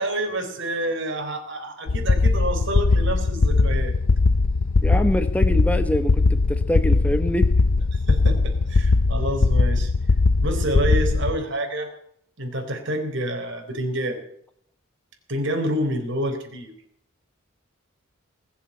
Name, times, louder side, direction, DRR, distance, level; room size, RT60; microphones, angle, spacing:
voice 1, 0.0-4.0 7.9-9.9 10.4-11.9 12.4-14.2 15.3-16.7, right 1 dB, 60° right, 4 dB, 3.9 m, -28 dB
sound 1, 1.9-11.4, left 3 dB, 65° left, 0.5 m, -20 dB
voice 2, 4.8-7.4, equal, 5° left, 8 dB, 1.0 m, -25 dB
20.0 x 7.4 x 9.6 m, 0.69 s
head